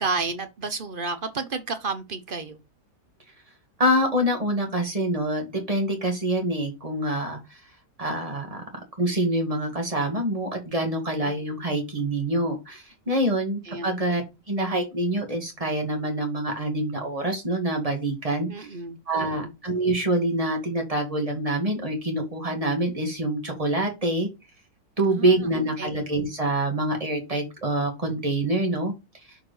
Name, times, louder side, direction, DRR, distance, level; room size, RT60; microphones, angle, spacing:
voice 1, 0.0-2.6 11.2-11.3 13.6-13.9 18.5-19.5 25.0-25.9, right 4 dB, 40° right, 0.9 m, -32 dB
voice 2, 3.8-7.4 8.0-8.6 9.0-14.2 14.5-18.7 19.1-24.3 25.0-28.9, right 1 dB, 25° right, 2.1 m, -26 dB
6.9 x 4.6 x 4.0 m
omnidirectional pair, 1.6 m